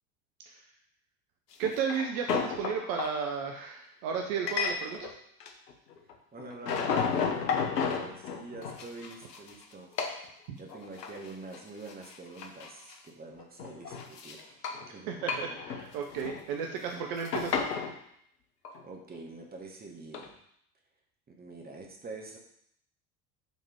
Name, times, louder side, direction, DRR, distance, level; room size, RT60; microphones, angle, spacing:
sound 1, 1.5-3.1 4.5-5.1 5.4-6.1 6.4-9.6 10.0-10.2 10.7-11.3 11.5-11.6 11.9-12.9 13.4-14.9 15.2-16.4 16.7-17.9 18.6-18.8 20.1-20.3, left 6 dB, 75° left, 0.8 m, -33 dB
voice 1, 1.6-5.1 14.9-17.6, right 6 dB, 55° right, 3 dB, 0.8 m, -33 dB
voice 2, 6.3-10.1 10.6-15.2 18.8-20.4 21.3-22.4, right 3 dB, 20° right, 1 dB, 1.2 m, -46 dB
7.6 x 3.6 x 3.5 m, 0.72 s
figure-of-eight pair, 65°, 48 cm